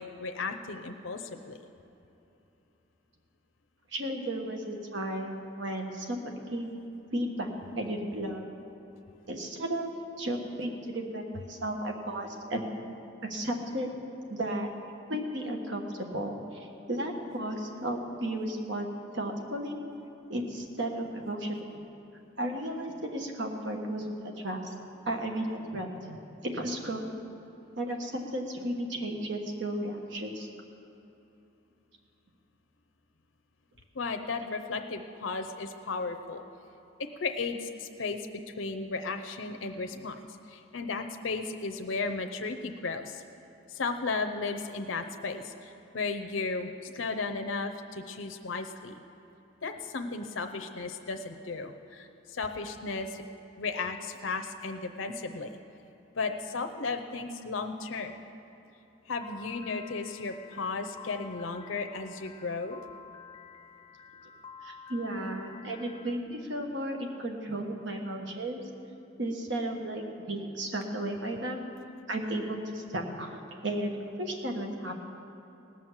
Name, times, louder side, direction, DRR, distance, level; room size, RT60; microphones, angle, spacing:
voice 1, 0.0-1.6 33.9-36.4 37.0-38.3 38.6-40.2 40.5-43.2 43.7-48.9 49.6-53.2 53.6-55.5 56.2-58.1 59.1-62.8, left 4 dB, 90° left, 6 dB, 0.7 m, -35 dB
voice 2, 3.9-7.5 7.8-8.5 9.3-9.9 10.2-12.6 13.2-13.9 14.3-14.7 15.1-18.9 19.1-19.8 20.3-21.6 22.4-24.7 25.0-26.2 26.4-27.1 27.8-30.5 64.6-68.6 69.2-71.6 72.1-73.9 74.2-75.0, right 1 dB, 70° right, 3 dB, 1.5 m, -34 dB
Piano, 59.2-66.2, left 6 dB, 25° left, 0.6 m, -50 dB
18.5 x 6.4 x 7.3 m, 2.9 s
head